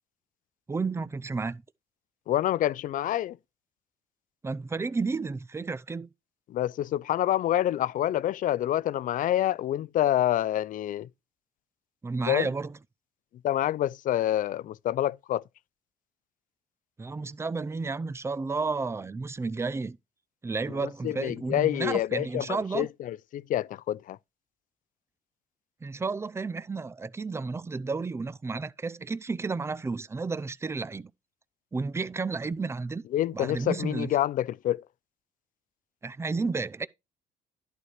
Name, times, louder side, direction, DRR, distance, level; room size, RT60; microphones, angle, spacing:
voice 1, 0.7-1.6 4.4-6.1 12.0-12.8 17.0-20.0 20.4-22.9 25.8-31.1 31.7-33.0 33.3-34.1 36.0-36.9, right 4 dB, 15° right, 0.5 m, -32 dB
voice 2, 2.3-3.4 6.5-11.1 12.3-12.5 13.4-15.4 20.8-24.2 33.1-34.8, left 12 dB, 55° left, 0.4 m, -27 dB
11.0 x 4.6 x 4.9 m
cardioid pair, 110°, 17 cm